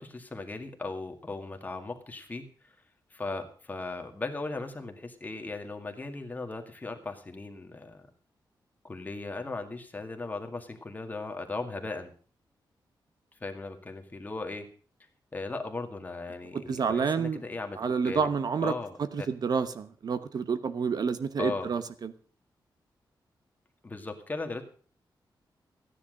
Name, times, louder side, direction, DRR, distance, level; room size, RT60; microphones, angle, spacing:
voice 1, 0.0-2.7 3.1-8.1 8.8-12.1 13.4-14.7 15.3-18.3 18.6-19.3 21.4-21.7 23.8-24.6, left 3 dB, 20° left, 4 dB, 2.1 m, -37 dB
voice 2, 16.5-17.4 17.8-18.7 19.0-22.1, right 6 dB, 55° right, 12 dB, 1.0 m, -29 dB
15.5 x 10.0 x 6.5 m, 0.43 s
wide cardioid pair, 160°, 8 cm